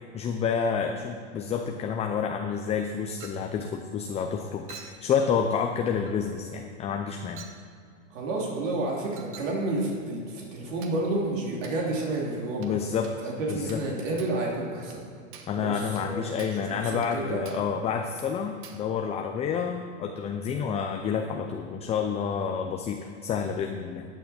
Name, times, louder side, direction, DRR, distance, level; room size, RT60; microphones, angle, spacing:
voice 1, 0.1-7.4 12.6-13.1 13.5-13.8 15.5-24.1, left 6 dB, 15° left, 4 dB, 0.5 m, -29 dB
Chink clink, 3.2-3.5 4.7-5.1 6.1-6.2 7.4-7.6 9.2-9.6 10.8-11.0 11.6-11.8 12.6-12.8 13.0-13.2 13.7-13.9 14.2-14.4 14.9-15.0 15.3-15.6 16.0-16.1 16.4-16.7 17.0-17.2 17.5-17.7 18.2-18.3 18.6-18.9, right 6 dB, 30° right, 1.2 m, -48 dB
voice 2, 8.1-12.8 13.2-15.0 15.5-16.3 16.6-17.4, right 2 dB, 70° right, -2 dB, 3.1 m, -30 dB
14.0 x 9.1 x 4.3 m, 2.3 s
hypercardioid pair, 130°, 39 cm